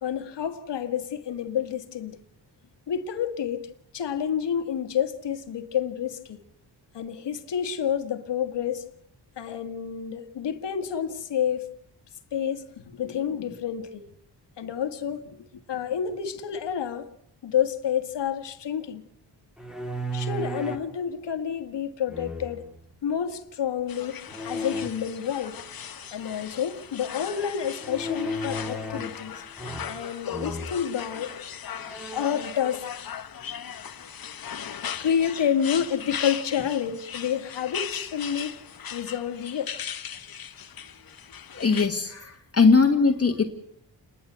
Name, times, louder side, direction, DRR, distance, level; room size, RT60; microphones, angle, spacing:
voice 1, 0.0-2.2 2.9-6.4 6.9-8.9 9.4-11.7 12.3-14.1 14.6-17.1 17.4-19.0 20.1-22.6 23.0-25.6 26.1-29.4 29.9-31.3 32.1-32.9 35.0-38.5 38.9-39.9, left 8 dB, 75° left, 1.8 m, -29 dB
sound 1, 19.6-20.9 22.1-22.8 24.3-24.9 27.8-29.2 29.6-30.1 30.3-30.7 31.3-31.4 31.8-32.5, equal, ahead, 2.1 m, -34 dB
sound 2, 23.9-41.9, left 8 dB, 55° left, 1.2 m, -38 dB
voice 2, 41.5-43.4, left 4 dB, 35° left, 1.7 m, -20 dB
29.0 x 11.5 x 8.1 m
cardioid pair, 95°, 42 cm